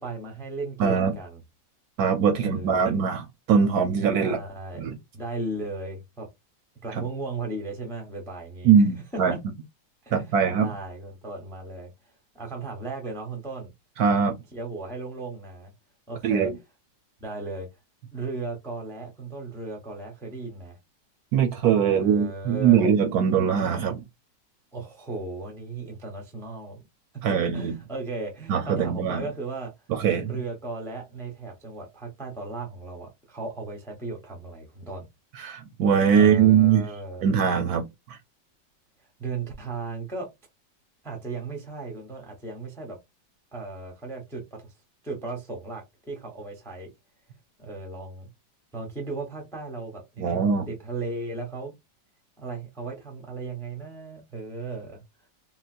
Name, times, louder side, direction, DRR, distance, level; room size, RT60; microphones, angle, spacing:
voice 1, 0.0-1.4 2.3-3.0 4.2-4.8 5.1-6.3 6.8-8.9 9.3-9.4 10.0-11.9 12.3-13.7 14.5-15.7 16.1-16.5 17.2-17.7 18.1-20.8 21.9-22.9 24.7-26.8 27.1-29.7 30.3-35.0 36.2-37.2 39.2-40.3 41.0-43.0 43.5-44.7 45.0-46.9 47.6-48.3 48.7-51.7 52.4-55.0, right 3 dB, 5° left, 0.5 m, -36 dB
voice 2, 0.8-1.1 2.0-4.4 4.8-5.0 6.9-7.0 8.6-9.3 10.1-10.7 14.0-14.3 16.2-16.5 21.3-24.0 27.2-27.7 28.5-29.2 29.9-30.3 35.4-36.8 37.2-37.8 38.1-38.2 50.2-50.7, right 7 dB, 70° right, 1.0 m, -21 dB
3.8 x 2.1 x 2.5 m
omnidirectional pair, 1.9 m